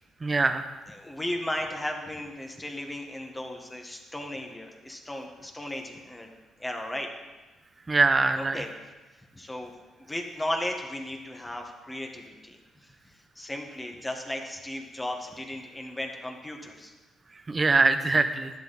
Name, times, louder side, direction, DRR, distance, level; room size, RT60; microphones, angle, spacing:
voice 1, 0.2-0.6 7.9-8.6 17.5-18.5, right 3 dB, 30° right, 9 dB, 0.9 m, -23 dB
voice 2, 0.9-6.3 6.6-7.1 8.3-8.7 9.3-9.7 10.1-12.6 13.3-16.9 18.1-18.2, left 1 dB, 15° left, 2 dB, 1.7 m, -35 dB
11.5 x 10.0 x 4.2 m, 1.2 s
cardioid pair, 90°, 0 cm